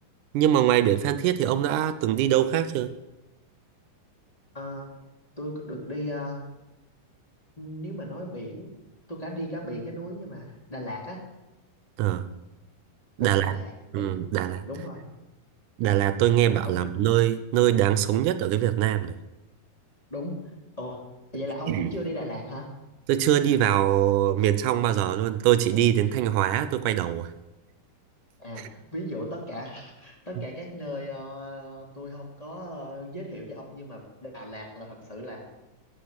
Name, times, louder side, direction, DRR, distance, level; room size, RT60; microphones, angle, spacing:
voice 1, 0.3-2.9 12.0-12.3 13.2-13.6 13.9-14.6 15.8-19.1 21.7-21.9 23.1-27.3, right 12 dB, 80° right, 2.0 m, -23 dB
voice 2, 4.5-4.9 5.4-6.4 7.6-8.7 9.1-11.2 13.2-14.1 14.6-15.1 16.6-16.8 20.1-21.0 21.3-22.7 28.4-35.4, left 1 dB, 10° left, 2.1 m, -36 dB
15.0 x 8.6 x 7.8 m
omnidirectional pair, 4.2 m